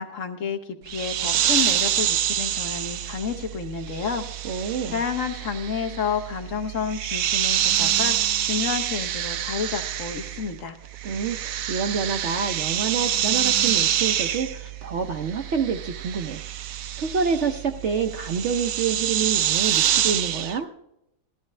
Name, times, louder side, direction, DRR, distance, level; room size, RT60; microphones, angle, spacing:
voice 1, 0.0-4.2 4.9-10.8, left 6 dB, 55° left, 4 dB, 1.2 m, -30 dB
sound 1, 0.9-10.6 10.8-20.6, right 11 dB, 75° right, 1.1 m, -26 dB
voice 2, 4.4-5.0 11.0-16.4 17.0-20.7, right 6 dB, 60° right, 6 dB, 0.8 m, -27 dB
17.5 x 13.5 x 3.2 m, 0.84 s
omnidirectional pair, 1.7 m